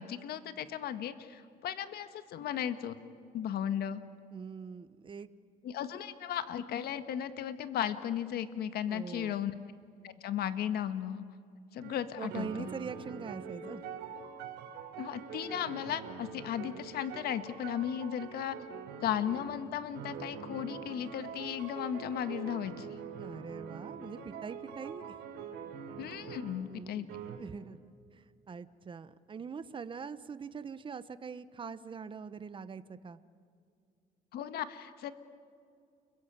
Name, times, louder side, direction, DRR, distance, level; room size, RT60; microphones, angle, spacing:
voice 1, 0.0-2.9 3.3-4.0 5.6-9.5 10.0-11.2 11.7-12.7 15.0-18.6 19.0-22.9 26.0-27.1 34.3-35.1, left 10 dB, 70° left, 10 dB, 1.6 m, -35 dB
voice 2, 4.3-5.3 8.9-9.4 12.2-13.8 23.2-25.2 26.7-27.1 27.3-27.8 28.1-33.2, right 5 dB, 30° right, 13 dB, 1.1 m, -43 dB
sound 1, 11.8-12.0 12.3-26.7 27.1-27.4, right 6 dB, 90° right, 4.6 m, -44 dB
29.5 x 22.5 x 9.1 m, 2.3 s
cardioid pair, 110°, 17 cm